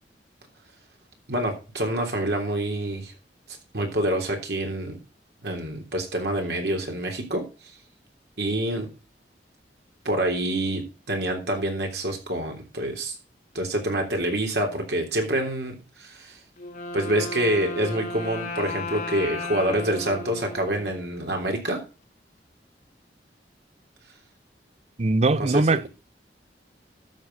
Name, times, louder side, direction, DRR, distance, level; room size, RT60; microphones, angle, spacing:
voice 1, 1.3-3.1 3.7-5.0 5.4-7.5 8.4-8.9 10.0-13.1 13.5-16.4 16.9-21.8 25.4-25.9, right 1 dB, 70° right, 3.3 m, -27 dB
Wind instrument woodwind instrument, 16.6-21.4, left 2 dB, 50° left, 2.4 m, -35 dB
voice 2, 25.0-25.9, right 3 dB, 40° right, 0.6 m, -21 dB
12.5 x 6.9 x 4.0 m
head